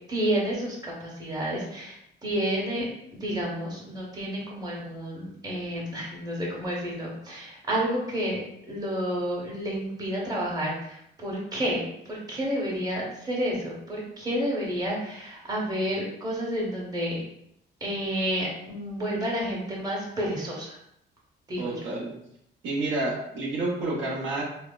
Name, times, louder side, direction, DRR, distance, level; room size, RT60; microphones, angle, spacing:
voice 1, 0.1-2.9 3.1-17.2 17.8-20.8 21.5-21.9, equal, 20° right, -4 dB, 0.9 m, -30 dB
voice 2, 21.6-22.1 22.6-24.4, right 2 dB, 70° right, -4 dB, 0.8 m, -29 dB
3.3 x 2.0 x 2.2 m, 0.76 s
cardioid pair, 90°, 20 cm